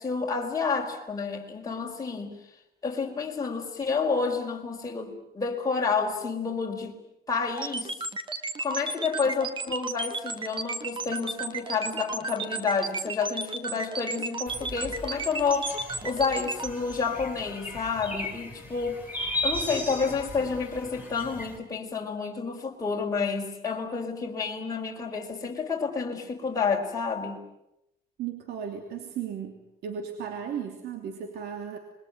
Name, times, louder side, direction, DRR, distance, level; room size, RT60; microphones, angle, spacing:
voice 1, 0.0-2.4 2.8-7.0 7.3-7.9 8.6-15.7 16.0-19.0 19.4-27.4, left 5 dB, 20° left, -1 dB, 4.7 m, -29 dB
sound 1, 7.6-16.7, right 3 dB, 30° right, 2.3 m, -33 dB
sound 2, 14.5-21.6, left 1 dB, 10° right, 6.6 m, -36 dB
voice 2, 28.2-31.8, right 8 dB, 75° right, 6 dB, 3.1 m, -35 dB
26.5 x 22.5 x 9.4 m, 0.84 s
cardioid pair, 110°, 17 cm